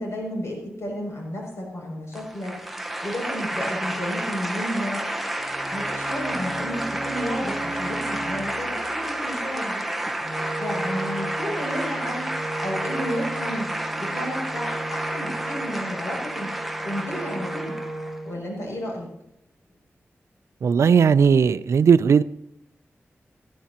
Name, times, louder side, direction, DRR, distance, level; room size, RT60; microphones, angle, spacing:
voice 1, 0.0-5.0 5.7-9.9 10.6-12.3 12.6-13.7 14.0-16.5 16.8-17.8 18.2-19.1, equal, 85° left, 6.9 m, -32 dB
sound 1, 2.1-18.2, right 1 dB, 5° right, 0.8 m, -30 dB
Bowed string instrument, 5.3-9.0, right 2 dB, 40° right, 2.3 m, -36 dB
Wind instrument woodwind instrument, 10.2-18.4, right 2 dB, 15° left, 5.9 m, -36 dB
voice 2, 20.6-22.2, right 6 dB, 85° right, 0.4 m, -17 dB
20.0 x 14.0 x 2.9 m
wide cardioid pair, 110°, 5 cm